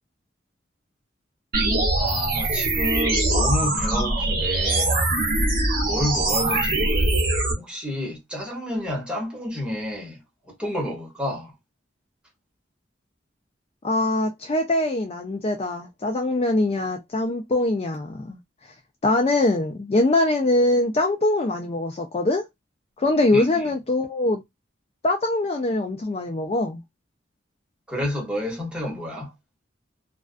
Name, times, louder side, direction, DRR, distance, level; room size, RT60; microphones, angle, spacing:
sound 1, 1.5-7.5, right 2 dB, 50° right, 0.9 m, -22 dB
voice 1, 2.0-5.0 5.8-7.3 7.6-10.2 10.6-11.5 23.3-23.7 27.9-29.3, left 1 dB, 5° right, 1.0 m, -30 dB
voice 2, 13.8-18.4 19.0-22.4 23.0-24.4 25.0-26.8, left 2 dB, 30° left, 0.4 m, -23 dB
2.4 x 2.3 x 2.3 m
head